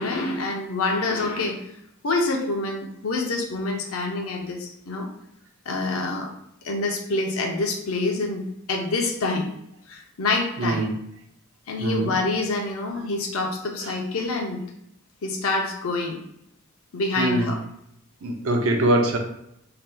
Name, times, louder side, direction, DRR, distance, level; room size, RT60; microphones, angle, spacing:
voice 1, 0.0-1.6 2.0-5.1 5.7-6.3 6.6-8.4 8.7-9.5 9.9-10.9 11.7-14.6 15.2-16.2 16.9-17.6, left 3 dB, 80° left, 2 dB, 0.6 m, -26 dB
voice 2, 10.6-11.0 11.8-12.1 13.8-13.9 17.2-17.6 18.2-19.2, right 1 dB, 70° right, 2 dB, 0.5 m, -23 dB
3.3 x 2.8 x 2.2 m, 0.75 s
head